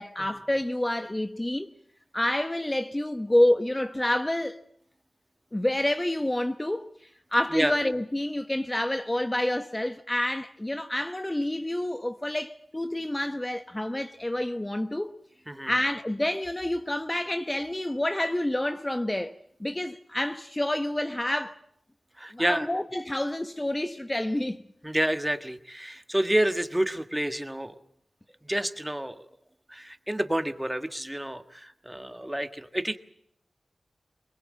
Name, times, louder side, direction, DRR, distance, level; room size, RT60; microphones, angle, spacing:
voice 1, 0.0-1.7 2.1-4.6 5.5-6.9 7.3-15.1 15.6-19.3 19.6-21.6 22.3-24.6, left 1 dB, 20° left, 1.0 m, -28 dB
voice 2, 22.2-22.7 24.8-27.7 28.4-29.3 29.7-33.0, right 1 dB, 10° right, 1.5 m, -29 dB
23.0 x 21.0 x 7.6 m
cardioid pair, 55°, 0 cm